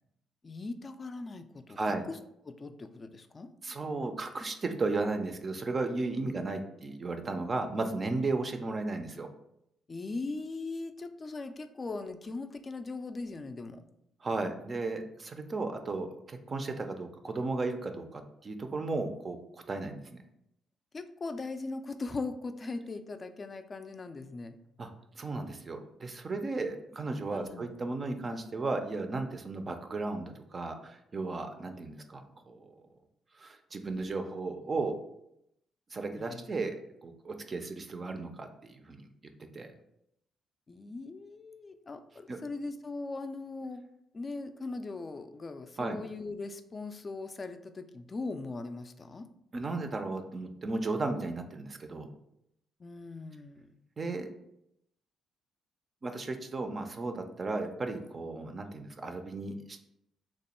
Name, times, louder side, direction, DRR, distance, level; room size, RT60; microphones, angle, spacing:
voice 1, 0.4-2.2 2.5-3.5 9.9-13.8 20.9-24.6 27.3-27.8 36.2-36.4 40.7-43.9 44.1-49.3 52.8-53.7, left 3 dB, 35° left, 8 dB, 0.3 m, -40 dB
voice 2, 3.6-9.3 14.2-20.1 24.8-24.9 25.2-32.7 33.4-35.0 35.9-36.8 37.0-39.1 39.5-39.7 42.3-42.4 45.8-46.0 49.5-52.1 54.0-54.3 56.0-59.8, right 3 dB, 35° right, 6 dB, 0.4 m, -35 dB
3.0 x 2.2 x 4.2 m, 0.79 s
cardioid pair, 90°, 0 cm